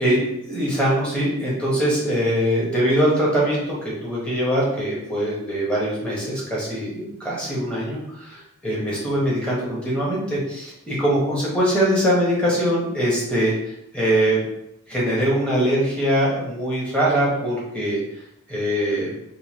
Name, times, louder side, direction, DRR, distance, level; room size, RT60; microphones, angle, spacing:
voice 1, 0.0-13.5 13.9-14.4 14.9-18.0 18.5-19.1, equal, 5° left, -6 dB, 1.0 m, -22 dB
3.8 x 2.8 x 3.0 m, 0.82 s
head